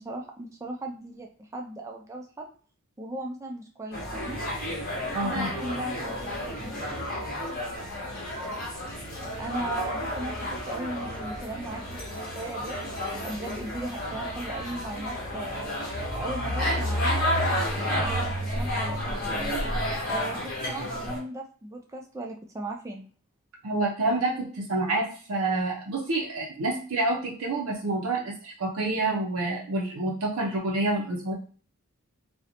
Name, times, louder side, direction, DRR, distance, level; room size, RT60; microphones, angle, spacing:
voice 1, 0.0-2.5 3.0-4.4 5.2-6.8 9.4-12.8 13.2-17.2 17.9-19.5 20.1-23.1, right 2 dB, 15° right, 1 dB, 0.3 m, -37 dB
sound 1, 3.9-21.2, equal, 40° left, 1.0 m, -31 dB
voice 2, 5.1-5.5 23.6-31.3, right 2 dB, 75° right, -1 dB, 0.5 m, -28 dB
2.7 x 2.1 x 2.5 m, 0.41 s
head